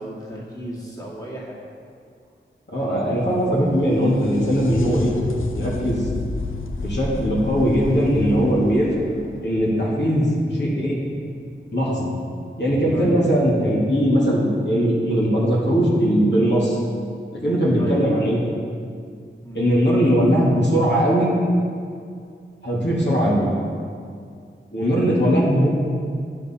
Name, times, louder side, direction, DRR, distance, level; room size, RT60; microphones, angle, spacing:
voice 1, 0.0-1.6 9.9-10.1 12.9-13.2 17.8-18.1 19.4-19.6 23.5-23.7, equal, 20° left, -6 dB, 1.9 m, -34 dB
voice 2, 2.7-5.1 5.6-6.0 6.8-9.1 9.4-11.0 11.7-12.1 12.6-16.8 17.3-18.4 19.5-21.3 22.6-23.4 24.7-25.7, equal, 60° left, -6 dB, 2.1 m, -20 dB
sound 1, 2.9-10.5 13.9-14.0 15.0-15.1, left 3 dB, 75° left, 0.6 m, -32 dB
11.0 x 6.8 x 4.3 m, 2.3 s
wide cardioid pair, 65°, 21 cm